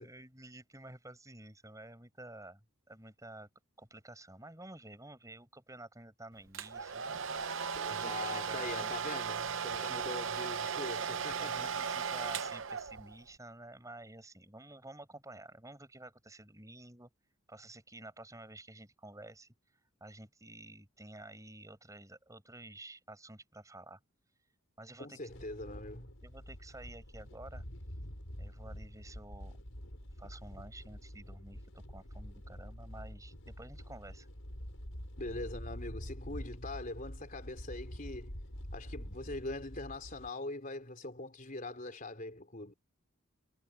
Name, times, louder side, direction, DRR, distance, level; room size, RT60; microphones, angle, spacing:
voice 1, 0.0-3.5 3.8-7.0 7.8-8.9 9.8-10.0 11.4-17.1 17.5-19.5 20.0-24.0 24.8-25.2 26.2-27.6 28.4-29.6 30.2-34.3, right 1 dB, 15° right, 7.3 m, -51 dB
Domestic sounds home sounds, 6.5-13.2, right 6 dB, 60° right, 0.8 m, -37 dB
voice 2, 7.8-11.8 25.0-26.1 35.2-38.4 38.7-42.7, left 2 dB, 40° left, 3.9 m, -42 dB
sound 1, 25.3-40.3, equal, 70° left, 5.9 m, -46 dB
head